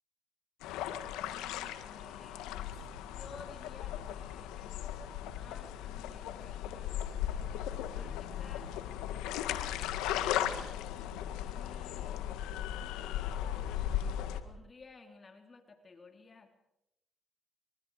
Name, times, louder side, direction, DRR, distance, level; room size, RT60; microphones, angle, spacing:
sound 1, 0.6-14.4, left 11 dB, 85° left, 1.7 m, -37 dB
voice 1, 1.2-8.7 9.6-10.9 11.3-12.2 13.6-16.5, left 4 dB, 35° left, 5 dB, 3.5 m, -55 dB
28.5 x 25.5 x 4.9 m, 0.84 s
supercardioid pair, 70°, 0 cm